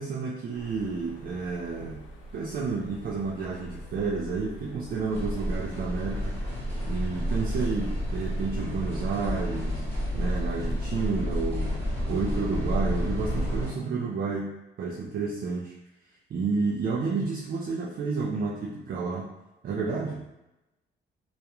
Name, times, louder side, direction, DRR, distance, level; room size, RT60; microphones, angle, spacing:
voice 1, 0.0-2.0 2.3-6.3 6.8-9.8 10.1-11.8 12.1-14.5 14.8-15.7 16.3-19.3 19.6-20.3, right 4 dB, 50° right, -4 dB, 0.4 m, -30 dB
sound 1, 0.5-11.0, equal, 90° left, 0.5 m, -45 dB
sound 2, 5.1-13.7, equal, 10° left, 1.2 m, -30 dB
2.3 x 2.2 x 2.9 m, 0.95 s
cardioid pair, 90°, 20 cm